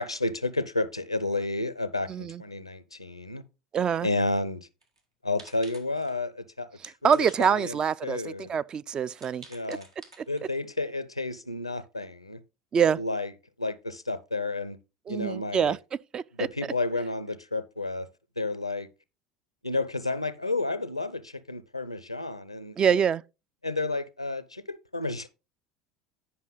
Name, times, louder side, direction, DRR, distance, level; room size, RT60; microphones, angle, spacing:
voice 1, 0.0-3.4 4.0-4.7 5.2-6.7 7.0-7.7 8.0-8.5 9.5-9.9 10.3-12.4 13.0-13.3 13.6-14.8 15.1-15.7 16.4-18.1 18.4-18.9 19.6-23.0 23.6-25.3, left 2 dB, 90° left, 0.5 m, -31 dB
voice 2, 2.1-2.4 3.7-4.1 6.8-9.8 10.2-10.3 12.7-13.0 15.1-15.8 16.1-16.5 22.8-23.2, right 7 dB, 30° right, 0.3 m, -25 dB
sound 1, 4.8-5.0 5.4-6.2 7.1-8.0 8.4-8.5 9.1-10.7, right 2 dB, 80° right, 1.6 m, -51 dB
9.6 x 5.5 x 3.8 m
figure-of-eight pair, 70°, 3 cm